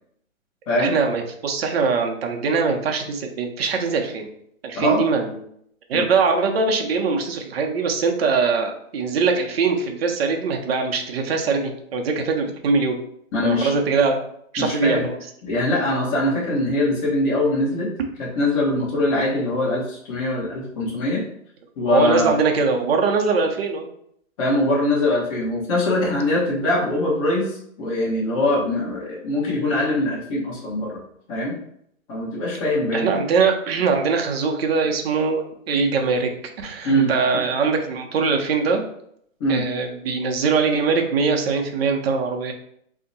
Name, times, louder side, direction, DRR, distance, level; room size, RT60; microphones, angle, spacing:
voice 1, 0.8-4.3 4.6-5.3 5.9-13.0 13.4-14.2 14.5-15.2 21.9-23.9 32.9-36.3 36.6-38.8 39.5-42.5, right 4 dB, 50° right, 3 dB, 0.6 m, -22 dB
voice 2, 13.3-14.1 14.6-15.1 15.4-17.9 18.2-21.2 21.8-22.3 24.4-31.0 31.3-31.6 32.1-33.1 36.8-37.4 39.4-39.6, left 1 dB, 25° left, -5 dB, 0.9 m, -22 dB
2.7 x 2.1 x 3.9 m, 0.70 s
hypercardioid pair, 150°, 41 cm